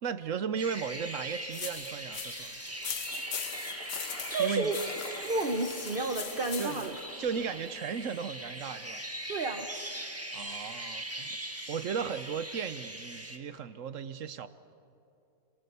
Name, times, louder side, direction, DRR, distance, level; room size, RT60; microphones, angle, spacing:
voice 1, 0.0-2.6 4.4-4.7 6.6-6.8 7.2-9.0 10.3-14.5, right 7 dB, 60° right, 13 dB, 1.1 m, -36 dB
Birds In The Forest At Dawn, 0.6-13.4, right 1 dB, 10° right, 1.5 m, -41 dB
sound 1, 1.5-7.0, left 7 dB, 65° left, 1.5 m, -41 dB
Bird / Water, 1.5-8.2, left 3 dB, 40° left, 1.6 m, -48 dB
voice 2, 4.3-4.7 5.2-6.9 9.3-9.7, right 3 dB, 40° right, 5 dB, 1.1 m, -31 dB
27.0 x 26.0 x 6.8 m, 2.8 s
omnidirectional pair, 1.6 m